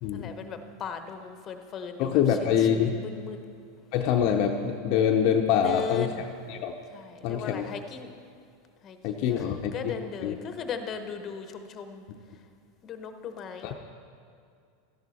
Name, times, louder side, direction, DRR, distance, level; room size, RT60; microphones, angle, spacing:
voice 1, 0.1-3.4 5.6-6.2 6.9-8.1 8.8-12.0 12.8-13.7, left 6 dB, 35° left, 7 dB, 1.0 m, -38 dB
voice 2, 2.0-3.0 3.9-6.1 6.5-6.7 7.2-7.7 9.0-9.9 10.2-10.3 13.6-13.7, left 8 dB, 55° left, 2 dB, 0.8 m, -25 dB
13.0 x 10.5 x 4.3 m, 2.3 s
hypercardioid pair, 105°, 0 cm